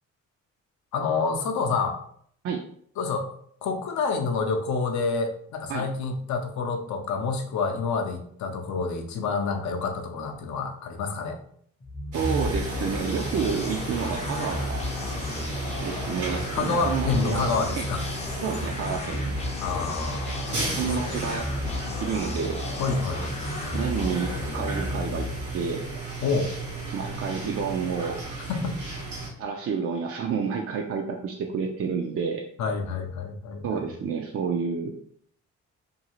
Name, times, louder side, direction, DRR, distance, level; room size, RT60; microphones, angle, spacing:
voice 1, 0.9-2.0 3.0-3.3 3.6-11.4 16.5-18.0 19.6-20.8 21.1-21.2 22.8-23.2 26.2-26.5 28.6-28.8 32.6-33.8, left 4 dB, 70° left, 5 dB, 0.6 m, -28 dB
sound 1, 11.8-25.6, left 1 dB, 20° left, 0.5 m, -32 dB
voice 2, 12.1-14.8 15.8-17.5 17.8-17.9 18.4-19.4 20.8-21.5 22.0-22.6 23.7-25.3 25.5-25.8 26.9-28.2 29.4-32.4 33.6-34.9, right 6 dB, 50° right, 1 dB, 0.4 m, -29 dB
sound 2, 12.1-29.3, right 2 dB, 80° right, 1.1 m, -35 dB
2.6 x 2.4 x 2.9 m, 0.63 s
cardioid pair, 90°, 30 cm